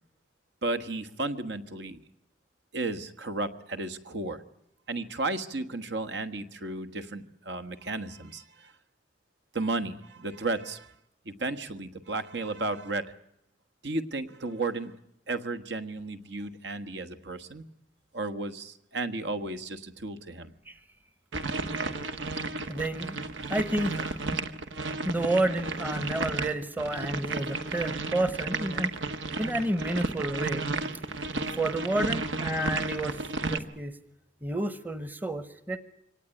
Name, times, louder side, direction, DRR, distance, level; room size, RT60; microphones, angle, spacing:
voice 1, 0.6-2.0 2.7-4.4 4.9-8.7 9.5-10.9 11.2-13.1 13.8-15.0 15.3-17.6 18.1-20.5, right 2 dB, 65° right, 11 dB, 1.4 m, -33 dB
sound 1, 21.3-33.6, right 3 dB, 85° right, 1.4 m, -33 dB
voice 2, 22.7-23.2 23.5-24.2 25.0-29.0 29.4-30.6 31.5-34.0 34.4-35.8, right 1 dB, 10° right, 12 dB, 0.9 m, -30 dB
24.5 x 18.5 x 9.8 m, 0.83 s
head